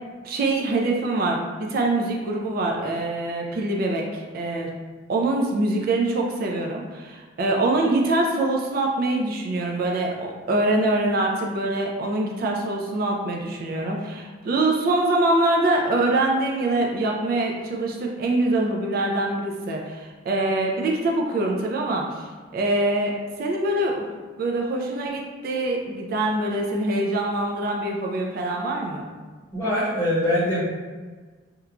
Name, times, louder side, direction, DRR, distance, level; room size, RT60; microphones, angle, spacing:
voice 1, 0.2-4.7 5.1-24.1 24.4-29.1, right 2 dB, 50° right, 0 dB, 0.3 m, -24 dB
voice 2, 29.5-30.6, left 1 dB, 15° left, -11 dB, 0.8 m, -23 dB
2.9 x 2.2 x 2.4 m, 1.4 s
head